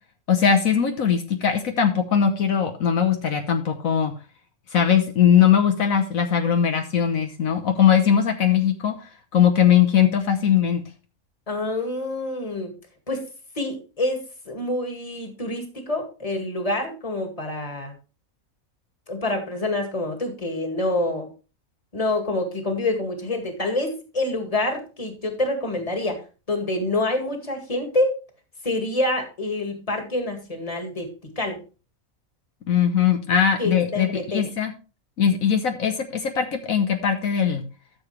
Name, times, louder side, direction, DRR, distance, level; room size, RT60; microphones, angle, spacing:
voice 1, 0.3-4.1 4.7-10.8 32.7-34.7 35.2-37.6, left 8 dB, 75° left, 5 dB, 1.5 m, -20 dB
voice 2, 11.5-12.7 13.1-13.2 13.6-14.2 14.5-18.0 19.1-21.3 21.9-28.2 28.6-31.6 33.6-34.4, left 2 dB, 25° left, 5 dB, 2.1 m, -27 dB
13.0 x 7.1 x 3.3 m, 0.33 s
omnidirectional pair, 1.5 m